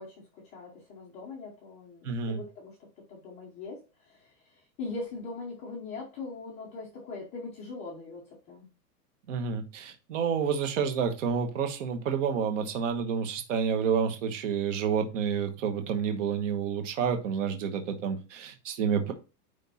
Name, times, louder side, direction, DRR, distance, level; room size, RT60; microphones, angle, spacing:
voice 1, 0.0-8.7, left 3 dB, 15° left, -2 dB, 0.9 m, -41 dB
voice 2, 2.0-2.4 9.3-19.1, right 6 dB, 50° right, 6 dB, 1.3 m, -29 dB
9.6 x 3.6 x 4.2 m, 0.31 s
supercardioid pair, 175°, 49 cm